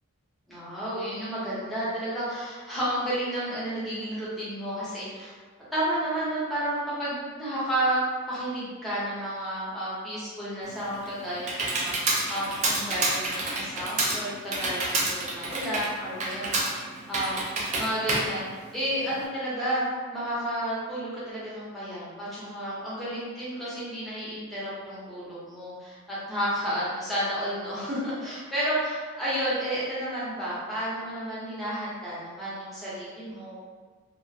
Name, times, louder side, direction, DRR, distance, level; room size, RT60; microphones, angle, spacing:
voice 1, 0.5-5.3 5.7-8.0 8.3-11.9 12.3-17.4 17.8-18.5 18.7-33.6, right 1 dB, ahead, -10 dB, 0.6 m, -31 dB
Computer keyboard, 10.7-19.2, right 2 dB, 30° right, 0.3 m, -29 dB
2.3 x 2.1 x 2.6 m, 1.5 s
head